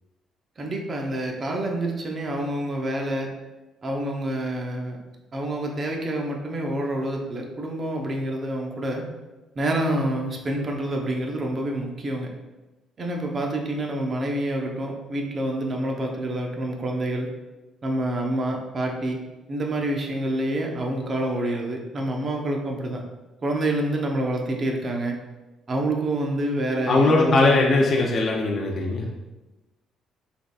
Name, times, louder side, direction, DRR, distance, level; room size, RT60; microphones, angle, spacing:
voice 1, 0.6-3.3 3.8-5.0 5.3-9.0 9.6-12.3 13.0-17.3 17.8-19.2 19.5-23.0 23.4-25.2 25.7-27.8, right 1 dB, 35° right, 1 dB, 0.8 m, -27 dB
voice 2, 26.9-29.1, left 2 dB, 40° left, -1 dB, 0.6 m, -20 dB
6.0 x 3.6 x 2.4 m, 1.1 s
cardioid pair, 130°, 0 cm